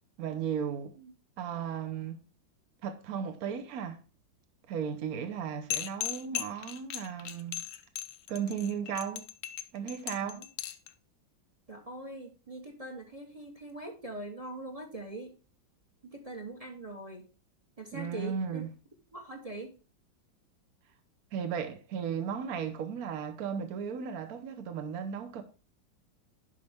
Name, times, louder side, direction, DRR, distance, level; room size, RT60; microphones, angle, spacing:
voice 1, 0.2-0.9 1.4-2.2 2.8-4.0 4.7-7.6 8.3-9.2 9.7-10.5 17.9-18.7 21.3-25.4, right 7 dB, 55° right, 1.4 m, -35 dB
sound 1, 5.7-10.9, left 13 dB, 75° left, 1.2 m, -37 dB
voice 2, 11.7-15.3 16.0-17.2 17.8-18.6 19.1-19.7, right 1 dB, 25° right, 1.0 m, -42 dB
10.5 x 5.4 x 3.5 m
omnidirectional pair, 2.0 m